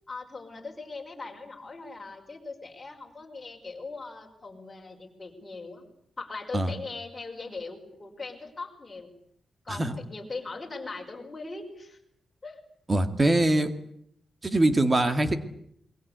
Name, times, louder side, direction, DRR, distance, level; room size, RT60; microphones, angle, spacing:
voice 1, 0.1-5.8 6.2-9.1 9.6-12.0 12.4-12.6, left 3 dB, 20° left, 1 dB, 5.3 m, -40 dB
voice 2, 12.9-13.7 14.4-15.4, right 1 dB, 20° right, 9 dB, 2.2 m, -23 dB
28.0 x 22.5 x 8.2 m, 0.71 s
wide cardioid pair, 175°, 0 cm